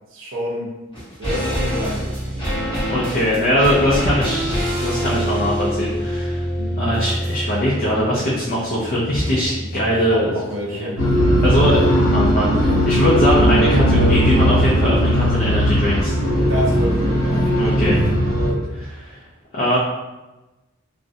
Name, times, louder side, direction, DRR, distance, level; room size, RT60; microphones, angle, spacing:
voice 1, 0.1-0.7 1.2-2.5 6.6-6.8 9.5-11.0 16.4-17.8, equal, 70° right, -3 dB, 0.6 m, -29 dB
sound 1, 0.9-10.3 10.6-10.7, equal, 25° left, 0.8 m, -26 dB
voice 2, 2.9-6.4 6.8-10.3 10.7-10.9 11.4-11.8 12.1-16.1 17.5-18.0 18.7-19.2 19.5-19.8, equal, 45° left, -6 dB, 0.4 m, -21 dB
sound 2, 11.0-18.5, equal, 75° left, 0.9 m, -17 dB
2.3 x 2.0 x 2.6 m, 1.1 s
head